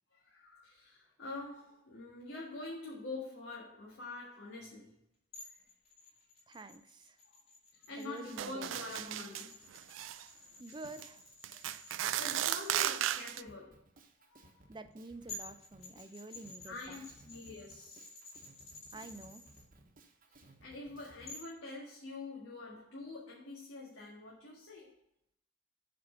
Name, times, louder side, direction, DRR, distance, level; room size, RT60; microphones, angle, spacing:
voice 1, 0.1-5.0 5.4-5.7 7.2-7.4 7.7-9.6 11.5-11.6 12.2-13.8 14.3-14.6 16.6-18.2 20.3-24.9, left 2 dB, 90° left, 1.7 m, -46 dB
sound 1, 5.3-13.0 14.9-15.0 15.3-19.6 21.3-21.6, left 3 dB, 35° left, 2.6 m, -52 dB
voice 2, 6.5-7.2 8.0-8.7 10.6-11.2 14.7-17.0 18.9-19.4, right 2 dB, 25° right, 0.4 m, -48 dB
sound 2, 8.4-9.5 9.7-10.2 10.8-11.1 11.4-13.4, right 12 dB, 90° right, 0.3 m, -35 dB
Drum kit, 13.5-21.4, right 1 dB, 45° right, 1.0 m, -60 dB
7.7 x 4.4 x 5.4 m
head